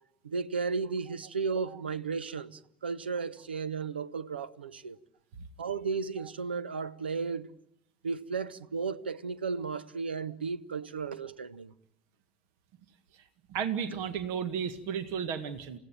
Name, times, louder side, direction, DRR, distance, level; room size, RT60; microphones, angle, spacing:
voice 1, 0.2-5.0 5.6-7.5 8.0-11.7, right 5 dB, 85° right, 0.9 m, -34 dB
voice 2, 13.5-15.8, right 7 dB, 60° right, 1.8 m, -33 dB
28.5 x 16.5 x 9.0 m
figure-of-eight pair, 75°, 5 cm